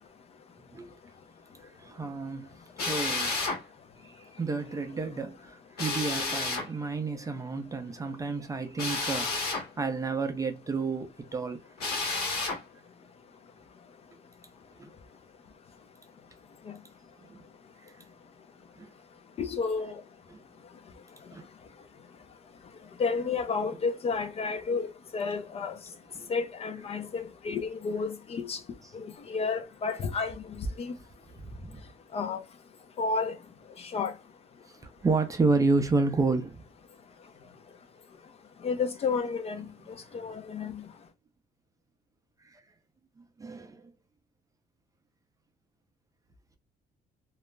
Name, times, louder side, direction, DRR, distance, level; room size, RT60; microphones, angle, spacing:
voice 1, 1.6-2.5 2.9-3.5 4.0-11.6 14.8-14.9 17.2-17.4 17.8-17.9 18.8-18.9 20.3-20.4 21.3-21.4 26.1-26.3 31.4-31.9 34.7-36.6 42.4-42.6 43.2-43.9, right 3 dB, 20° right, 0.4 m, -31 dB
Drill, 2.8-3.6 5.8-6.7 8.8-9.7 11.8-12.6, left 3 dB, 65° left, 1.1 m, -30 dB
voice 2, 19.4-20.0 23.0-24.9 25.1-25.8 26.3-28.6 28.9-30.9 32.1-32.4 33.0-33.4 33.9-34.1 38.6-39.6 40.1-40.8, left 4 dB, 35° left, 0.5 m, -31 dB
2.3 x 2.0 x 3.2 m
cardioid pair, 110°, 17 cm